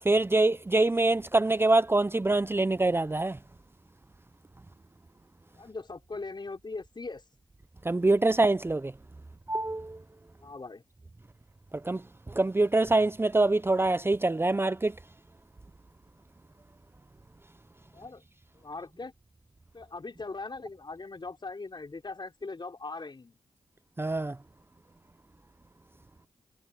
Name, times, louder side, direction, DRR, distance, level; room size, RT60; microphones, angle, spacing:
voice 1, 0.0-3.4 7.8-8.9 9.5-10.0 11.7-15.0 24.0-24.4, right 2 dB, 20° right, 0.6 m, -25 dB
voice 2, 5.6-7.2 10.4-10.8 17.9-18.2 18.6-19.1 19.7-23.4, left 3 dB, 40° left, 4.4 m, -40 dB
supercardioid pair, 40°, 12 cm